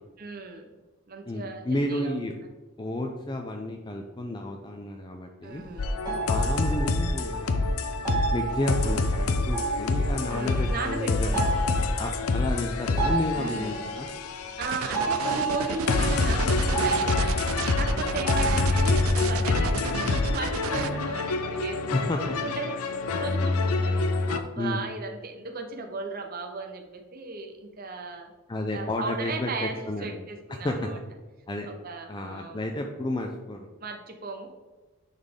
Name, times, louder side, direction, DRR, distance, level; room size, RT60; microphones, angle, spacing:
voice 1, 0.2-0.7 1.1-2.1 5.4-6.0 10.3-11.8 13.3-13.9 14.6-17.4 17.7-28.3 28.7-31.0 31.7-32.7 33.8-34.5, right 3 dB, 40° right, 4 dB, 0.8 m, -36 dB
voice 2, 1.3-2.3 2.8-5.6 6.3-7.8 8.3-11.3 11.7-14.1 21.9-22.4 24.6-24.8 28.5-30.3 30.6-30.8 31.5-31.7 32.1-33.7, left 1 dB, 20° left, 3 dB, 0.4 m, -31 dB
sound 1, 5.5-5.7 6.0-7.5 7.8-7.9 8.0-14.1 14.5-19.6, right 4 dB, 20° right, 1.8 m, -32 dB
sound 2, 5.8-24.4, left 3 dB, 80° left, 0.6 m, -27 dB
sound 3, 14.6-20.9, right 8 dB, 70° right, 0.3 m, -33 dB
9.7 x 4.1 x 3.6 m, 1.2 s
head